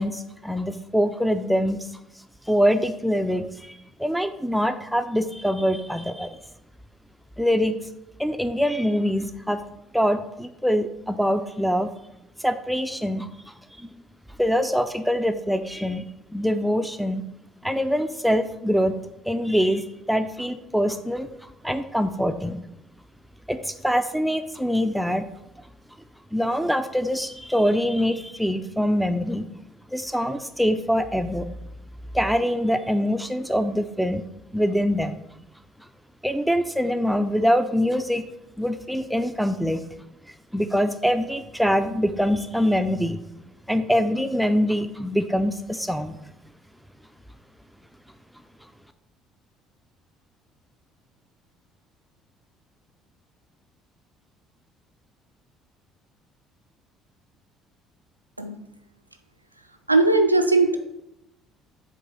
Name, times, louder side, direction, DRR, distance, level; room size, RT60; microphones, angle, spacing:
voice 1, 0.0-1.9 2.5-6.4 7.4-7.8 8.2-9.6 9.9-11.9 12.4-14.0 14.4-16.0 16.3-17.2 17.6-19.0 19.3-21.3 21.6-22.6 23.5-25.3 26.3-29.5 29.9-31.5 32.1-34.2 34.5-35.2 36.2-38.3 38.6-39.8 40.5-43.2 43.7-46.2, equal, ahead, 8 dB, 0.5 m, -24 dB
voice 2, 59.9-60.8, right 2 dB, 90° right, 7 dB, 0.4 m, -19 dB
7.4 x 3.2 x 5.3 m, 0.85 s
figure-of-eight pair, 50°, 0 cm